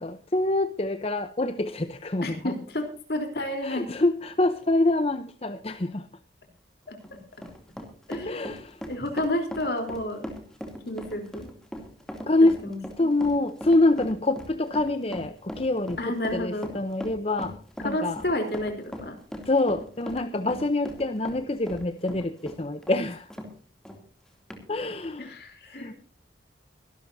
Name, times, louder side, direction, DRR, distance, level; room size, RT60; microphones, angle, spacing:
voice 1, 0.0-2.5 3.6-6.1 8.3-8.8 12.3-12.6 13.0-17.5 17.8-18.2 19.4-23.3 24.7-25.3 25.7-25.9, left 2 dB, 30° left, 10 dB, 0.7 m, -26 dB
voice 2, 2.2-3.9 6.9-7.0 8.1-8.6 8.8-10.3 10.9-11.5 12.6-13.1 16.0-16.7 17.8-19.2 20.4-20.6 24.7-24.9 25.2-25.9, left 1 dB, 60° left, 5 dB, 3.6 m, -31 dB
Run, 6.9-23.5 23.9-24.0 24.5-24.6, equal, 5° left, 2.7 m, -39 dB
23.5 x 12.5 x 2.7 m, 0.41 s
head